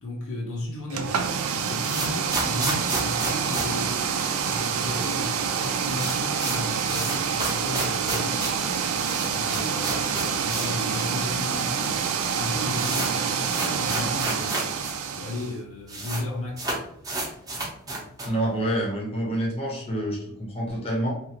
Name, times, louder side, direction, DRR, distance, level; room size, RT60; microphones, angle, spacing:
voice 1, 0.0-4.0 4.4-8.8 9.3-14.9 15.1-16.8 18.2-18.3, left 2 dB, 65° left, 0.7 m, -35 dB
sound 1, 0.9-15.5, right 6 dB, 65° right, 0.3 m, -27 dB
sound 2, 1.8-4.7 4.9-5.0 5.3-5.4 5.6-10.8 11.1-11.2 11.9-12.0 12.2-14.9 15.2-15.3 15.5-16.2 16.5-18.4, right 2 dB, 15° right, 0.6 m, -31 dB
voice 2, 18.2-21.1, right 1 dB, 25° left, 0.8 m, -27 dB
2.9 x 2.4 x 2.8 m
head